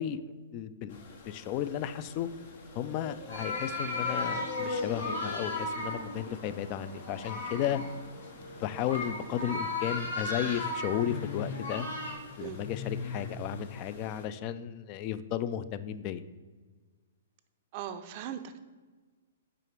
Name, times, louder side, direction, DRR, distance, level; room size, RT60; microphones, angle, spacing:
voice 1, 0.0-2.3 2.8-7.8 8.6-11.9 12.4-16.2, left 10 dB, 35° left, 13 dB, 0.3 m, -34 dB
sound 1, 0.9-14.2, left 4 dB, 55° left, 0.8 m, -43 dB
sound 2, 3.3-12.1, left 2 dB, 80° left, 1.9 m, -36 dB
voice 2, 17.7-18.6, right 10 dB, 40° right, 9 dB, 0.4 m, -39 dB
4.9 x 4.8 x 4.6 m, 1.4 s
hypercardioid pair, 120°, 0 cm